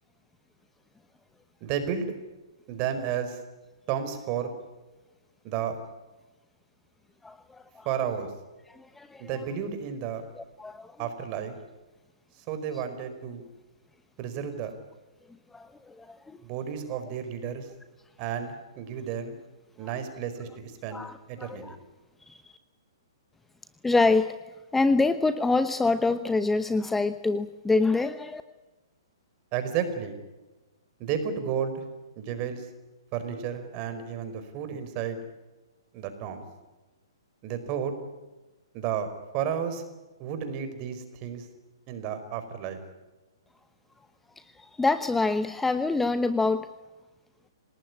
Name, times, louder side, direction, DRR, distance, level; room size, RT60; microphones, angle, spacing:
voice 1, 1.6-2.1 2.7-3.4 3.9-4.5 5.4-5.8 7.8-8.3 9.2-10.2 11.0-11.5 12.5-13.4 14.2-14.7 16.4-17.7 18.2-19.3 19.8-21.0 21.3-21.8 29.5-30.1 31.0-31.8 32.2-32.7 33.1-35.2 35.9-36.4 37.4-37.9 38.7-39.1 39.3-39.8 40.2-41.5 41.9-42.8, right 8 dB, 35° right, 9 dB, 5.0 m, -32 dB
voice 2, 7.2-7.8 9.0-9.2 10.4-10.9 15.5-15.7 16.0-16.2 20.9-21.8 22.3-22.4 23.8-24.3 24.7-28.4 44.8-46.7, left 3 dB, 5° left, 11 dB, 0.9 m, -25 dB
27.5 x 19.0 x 9.8 m, 1.1 s
hypercardioid pair, 125°, 3 cm